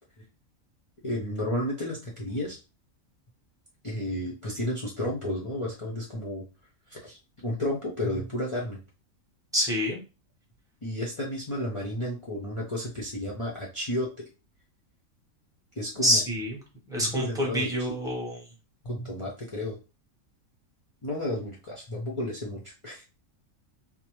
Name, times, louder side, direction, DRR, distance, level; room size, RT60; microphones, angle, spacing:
voice 1, 1.0-2.6 3.8-6.4 6.9-7.2 7.4-8.8 10.8-14.2 15.8-16.2 17.0-17.9 18.8-19.8 21.0-23.0, left 1 dB, 45° left, -3 dB, 0.4 m, -32 dB
voice 2, 9.5-10.0 16.0-16.6 16.9-18.4, equal, 5° right, -2 dB, 0.6 m, -26 dB
2.6 x 2.0 x 2.9 m, 0.30 s
omnidirectional pair, 1.4 m